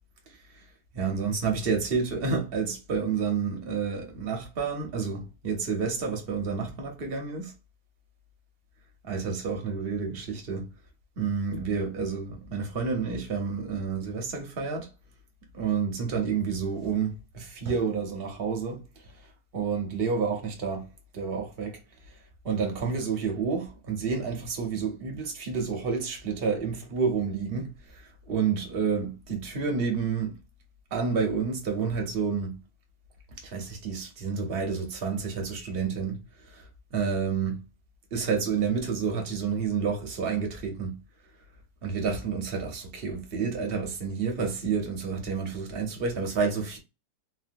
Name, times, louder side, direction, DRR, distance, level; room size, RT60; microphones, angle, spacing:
voice 1, 0.9-7.5 9.0-10.7 11.2-14.9 15.5-18.8 19.5-20.9 21.1-21.8 22.4-30.3 30.9-32.6 33.4-36.2 36.5-36.6 36.9-37.6 38.1-41.0 41.8-46.8, right 5 dB, 45° right, 0.8 m, -29 dB
3.3 x 2.2 x 2.5 m
omnidirectional pair, 1.9 m